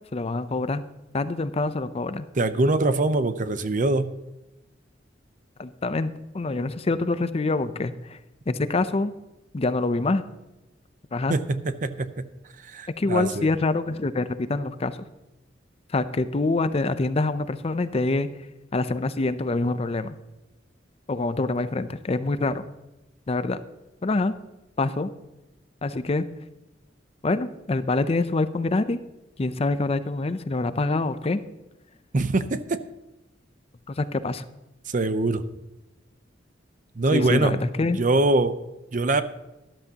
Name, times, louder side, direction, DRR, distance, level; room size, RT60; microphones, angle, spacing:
voice 1, 0.1-0.8 1.1-2.3 5.6-8.2 8.5-9.1 9.5-10.2 11.1-11.4 13.0-15.0 15.9-18.3 18.7-20.1 21.1-22.6 23.3-23.6 24.0-24.3 24.8-25.1 25.8-26.3 27.2-29.0 29.4-31.4 33.9-34.4 37.1-38.0, left 2 dB, 35° left, 12 dB, 0.5 m, -25 dB
voice 2, 2.4-4.1 11.3-12.1 12.6-13.5 32.1-32.8 34.9-35.4 37.0-37.6 38.0-38.6 38.9-39.2, right 2 dB, 45° right, 12 dB, 0.7 m, -23 dB
13.5 x 12.0 x 2.9 m, 1.0 s
head